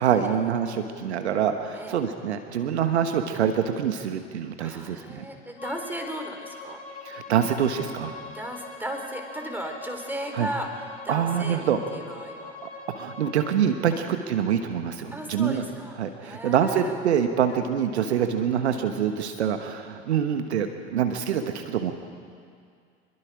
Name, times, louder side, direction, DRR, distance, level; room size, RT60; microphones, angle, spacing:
voice 1, 0.0-5.2 7.0-8.1 10.3-10.5 11.1-11.8 12.6-15.6 16.0-21.9, right 8 dB, 75° right, 7 dB, 1.4 m, -25 dB
voice 2, 4.6-6.8 8.3-12.6 13.9-14.0 15.1-16.9 17.5-17.6, equal, 5° right, 3 dB, 3.9 m, -36 dB
Bowed string instrument, 5.6-13.6, left 3 dB, 25° left, 7.6 m, -42 dB
27.0 x 22.0 x 5.0 m, 2.2 s
figure-of-eight pair, 75°, 34 cm